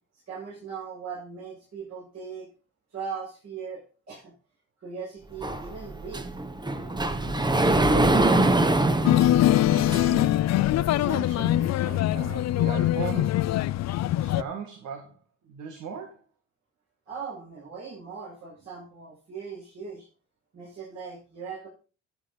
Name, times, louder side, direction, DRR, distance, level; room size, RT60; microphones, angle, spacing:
voice 1, 0.3-2.5 2.9-4.3 4.8-6.2 17.1-20.1 20.5-21.7, right 5 dB, 60° right, -6 dB, 7.2 m, -39 dB
Sliding door, 5.4-10.4, right 2 dB, 15° right, 1.1 m, -24 dB
sound 1, 9.0-14.4, left 13 dB, 60° left, 0.5 m, -23 dB
voice 2, 9.9-13.5 14.2-16.2, right 6 dB, 75° right, 4 dB, 2.0 m, -38 dB
13.0 x 7.9 x 4.2 m, 0.36 s
cardioid pair, 90°, 30 cm